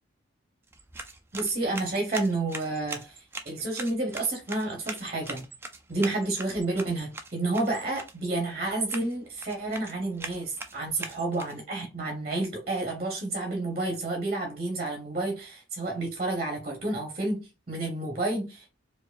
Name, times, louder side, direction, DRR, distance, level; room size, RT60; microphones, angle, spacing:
sound 1, 0.6-11.8, right 3 dB, 10° right, 0.3 m, -42 dB
voice 1, 1.3-5.4 5.9-18.7, right 2 dB, 30° right, 0.8 m, -30 dB
4.5 x 2.5 x 2.4 m
head